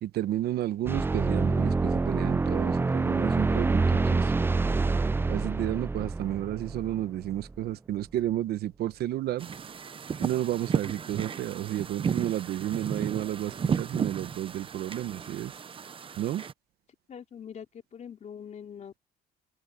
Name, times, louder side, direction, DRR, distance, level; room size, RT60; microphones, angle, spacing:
voice 1, 0.0-4.3 5.3-9.5 10.2-15.5 16.2-16.4, right 13 dB, 70° right, 1.2 m, -32 dB
sound 1, 0.8-7.5, right 3 dB, 15° right, 0.4 m, -26 dB
sound 2, 9.4-16.5, right 6 dB, 30° right, 0.8 m, -34 dB
voice 2, 17.1-17.7 17.9-19.0, left 8 dB, 45° left, 3.7 m, -43 dB
open air
cardioid pair, 110°, 17 cm